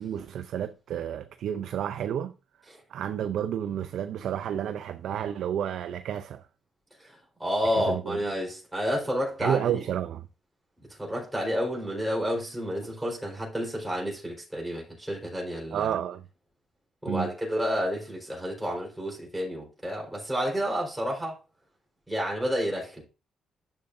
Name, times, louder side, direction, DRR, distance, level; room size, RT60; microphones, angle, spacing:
voice 1, 0.0-2.3 2.9-6.5 7.8-8.2 9.4-10.2 15.7-16.2 17.1-17.3, right 9 dB, 75° right, 0.5 m, -30 dB
voice 2, 7.0-9.7 10.9-15.9 17.0-21.4 22.1-23.0, equal, 5° right, 4.2 m, -30 dB
10.5 x 6.6 x 2.6 m
cardioid pair, 90°, 0 cm